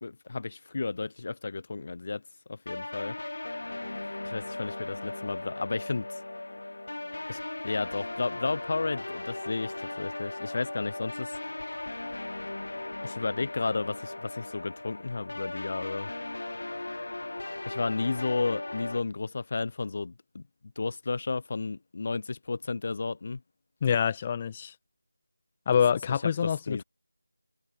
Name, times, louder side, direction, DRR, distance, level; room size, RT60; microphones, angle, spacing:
voice 1, 0.0-2.2 2.5-3.2 4.2-6.2 7.3-11.4 13.0-16.1 17.7-20.4 20.8-23.4 26.4-26.8, left 3 dB, 40° left, 0.7 m, -32 dB
sound 1, 2.7-19.0, left 2 dB, 65° left, 2.1 m, -38 dB
voice 2, 23.8-24.7 25.6-26.8, left 7 dB, 20° left, 1.7 m, -26 dB
figure-of-eight pair, 165°, 0 cm